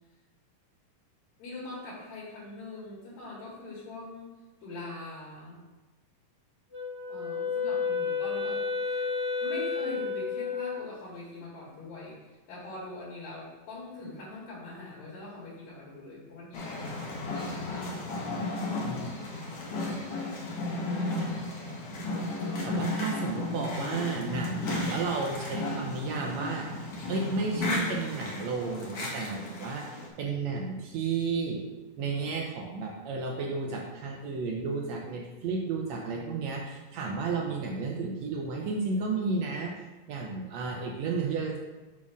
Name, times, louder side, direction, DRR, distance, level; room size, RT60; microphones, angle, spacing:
voice 1, 1.4-4.3 4.6-5.6 7.1-9.1 9.4-12.2 12.5-17.1 20.8-21.3, left 2 dB, 75° left, -6 dB, 3.8 m, -42 dB
Wind instrument woodwind instrument, 6.7-10.8, left 5 dB, 35° left, 2.0 m, -31 dB
sound 1, 16.5-30.1, left 2 dB, 55° left, 2.1 m, -34 dB
voice 2, 18.3-19.1 22.6-26.7 27.1-31.6 32.0-39.7 40.1-41.6, right 4 dB, 80° right, 1 dB, 1.6 m, -32 dB
7.1 x 4.3 x 6.1 m, 1.2 s
omnidirectional pair, 3.9 m